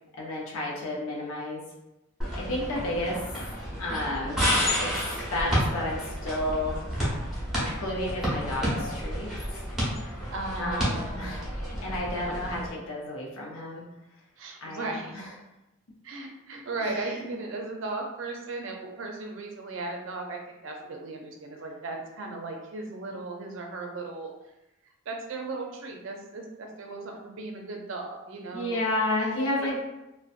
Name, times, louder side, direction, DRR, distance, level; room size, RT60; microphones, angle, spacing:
voice 1, 0.2-1.6 2.4-3.2 3.8-4.4 4.8-4.9 5.3-6.8 7.6-9.3 10.0-10.2 10.6-11.5 11.8-13.8 14.6-15.3 16.8-17.4 28.5-29.8, left 1 dB, 85° left, -3 dB, 0.6 m, -31 dB
sound 1, 2.2-12.7, equal, ahead, 0.6 m, -30 dB
voice 2, 9.9-11.6 14.4-15.2 16.0-24.3 25.1-28.8 29.4-29.8, right 3 dB, 70° right, 2 dB, 0.4 m, -36 dB
2.5 x 2.1 x 2.4 m, 0.96 s
head